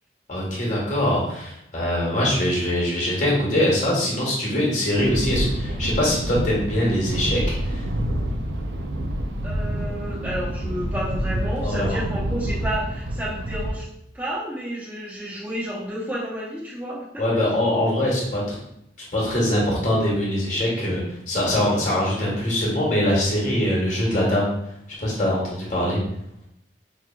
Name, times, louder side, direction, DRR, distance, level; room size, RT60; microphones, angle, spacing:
voice 1, 0.3-7.9 11.6-12.0 17.2-18.6 19.1-24.5 25.0-26.0, left 1 dB, 40° left, -4 dB, 1.4 m, -23 dB
sound 1, 4.9-13.8, right 1 dB, 75° right, 0.5 m, -27 dB
voice 2, 9.4-13.9 14.1-17.2, equal, 10° right, -9 dB, 1.0 m, -31 dB
5.5 x 3.1 x 2.3 m, 0.77 s
head